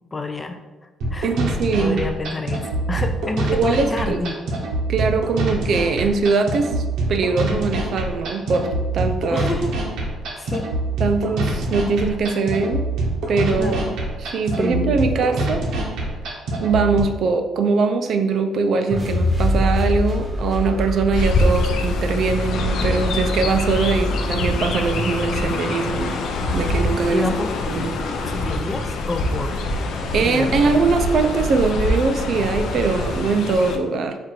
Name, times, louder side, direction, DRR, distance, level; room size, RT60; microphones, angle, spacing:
voice 1, 0.1-0.6 1.1-1.4 1.8-4.4 9.3-9.7 10.4-10.7 13.5-13.9 14.6-15.0 27.1-27.5 28.3-29.6 30.2-30.9, left 2 dB, 20° left, 6 dB, 0.4 m, -28 dB
sound 1, 1.0-17.0, right 2 dB, 85° right, 0.9 m, -25 dB
voice 2, 1.2-2.0 3.5-4.2 4.9-6.8 7.1-9.5 11.0-12.9 13.3-13.9 14.2-15.7 16.6-26.2 26.5-27.3 27.7-28.0 30.1-34.2, right 4 dB, 55° right, 7 dB, 0.4 m, -21 dB
sound 2, 18.9-25.1, left 1 dB, 5° right, 0.9 m, -25 dB
Chirp tweet, 21.1-33.8, left 2 dB, 70° left, 0.5 m, -25 dB
4.4 x 2.5 x 4.4 m, 1.1 s
cardioid pair, 140°, 0 cm